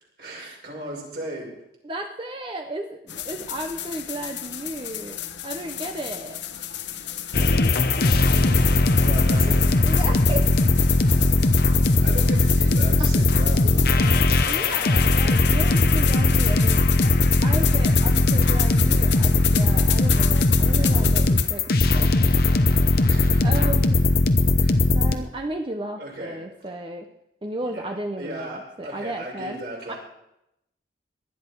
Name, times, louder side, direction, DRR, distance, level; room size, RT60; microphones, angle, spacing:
voice 1, 0.2-1.5 9.0-9.7 12.0-14.0 14.9-15.6 16.1-16.6 17.5-17.8 23.1-23.5 24.6-24.9 26.0-26.7 27.6-30.0, right 1 dB, 60° right, -2 dB, 6.1 m, -37 dB
voice 2, 1.8-6.4 9.9-10.7 14.5-16.9 17.4-22.1 23.4-24.0 24.9-27.1 27.4-29.6 29.9-30.0, right 1 dB, 30° right, 4 dB, 0.8 m, -34 dB
sound 1, 3.1-21.5, left 11 dB, 85° left, 1.0 m, -33 dB
sound 2, 7.3-25.2, left 2 dB, 55° left, 0.9 m, -19 dB
18.5 x 12.0 x 4.6 m, 0.83 s
head